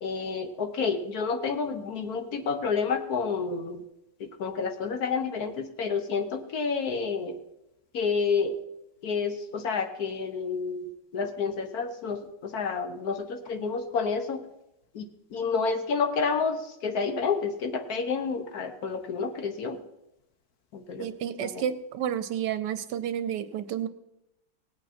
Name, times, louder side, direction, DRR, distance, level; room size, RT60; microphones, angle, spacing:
voice 1, 0.0-3.8 4.2-7.4 7.9-8.6 9.0-14.4 14.9-19.8 20.7-21.1 21.4-21.6, left 5 dB, 60° left, 7 dB, 1.4 m, -29 dB
voice 2, 21.0-23.9, right 9 dB, 70° right, 12 dB, 1.2 m, -31 dB
18.0 x 8.6 x 4.3 m, 0.87 s
omnidirectional pair, 2.0 m